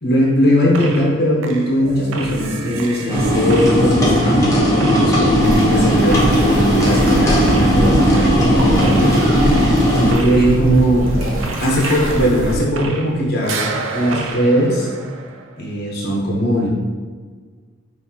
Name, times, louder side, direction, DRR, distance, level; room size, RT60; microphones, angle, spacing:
voice 1, 0.0-9.3 10.0-11.2 11.6-14.9 15.6-16.7, equal, 55° left, -3 dB, 0.9 m, -19 dB
sound 1, 0.7-1.2 1.4-13.2 13.4-15.6, right 2 dB, 70° right, 0.4 m, -28 dB
sound 2, 3.1-10.1, equal, 15° left, 0.9 m, -16 dB
sound 3, 5.3-12.6, equal, 85° right, 0.9 m, -25 dB
5.5 x 2.8 x 2.8 m, 1.5 s
head